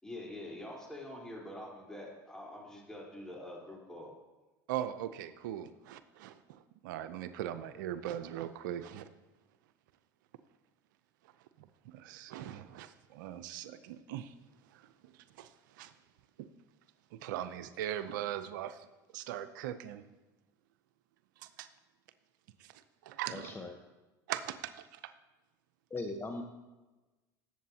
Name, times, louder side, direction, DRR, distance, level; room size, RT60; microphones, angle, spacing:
voice 1, 0.0-4.1, left 1 dB, 5° left, -3 dB, 3.9 m, -45 dB
voice 2, 4.7-6.3 6.8-9.0 11.9-14.3 15.4-15.5 15.8-15.9 17.2-18.8 19.1-20.0 21.6-21.7 23.1-23.5 24.3-24.6, right 11 dB, 80° right, 11 dB, 0.6 m, -39 dB
voice 3, 23.3-23.8 25.9-26.4, left 2 dB, 20° left, 3 dB, 1.0 m, -39 dB
18.5 x 7.7 x 2.8 m, 1.1 s
supercardioid pair, 90°, 10 cm